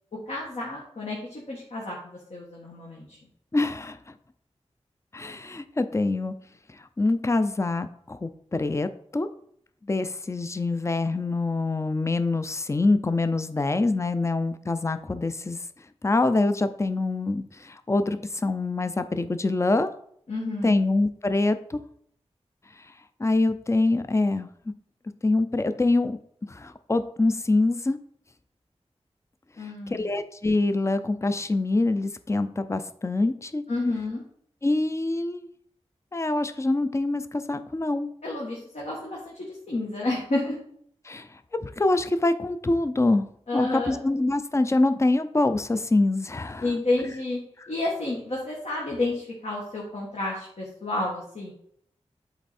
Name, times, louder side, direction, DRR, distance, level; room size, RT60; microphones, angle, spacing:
voice 1, 0.3-3.2 20.3-20.8 29.6-30.1 33.7-34.2 38.2-40.5 43.5-44.0 46.6-47.4 47.7-51.5, left 2 dB, 70° left, -4 dB, 1.5 m, -30 dB
voice 2, 3.5-4.0 5.1-6.3 7.0-9.3 9.9-15.6 16.0-19.9 20.6-21.8 23.2-24.5 25.2-26.2 26.5-28.0 29.9-33.6 34.6-35.5 36.1-38.1 41.0-43.3 43.5-46.7, left 2 dB, 25° left, 10 dB, 0.5 m, -25 dB
8.1 x 3.5 x 4.2 m, 0.67 s
wide cardioid pair, 55°, 12 cm